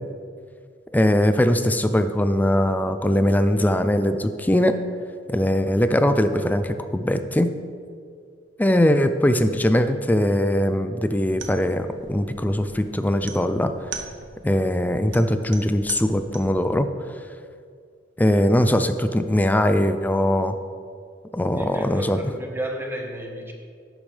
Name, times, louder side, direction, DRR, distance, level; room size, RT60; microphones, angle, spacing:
voice 1, 0.9-4.8 5.3-7.5 8.6-13.7 14.4-16.9 18.2-20.5 21.3-22.2, left 1 dB, 10° left, 9 dB, 0.4 m, -21 dB
sound 1, 11.3-16.7, right 5 dB, 75° right, 0.8 m, -41 dB
voice 2, 21.6-23.5, equal, 15° right, 1 dB, 1.2 m, -32 dB
11.5 x 8.8 x 3.3 m, 2.2 s
head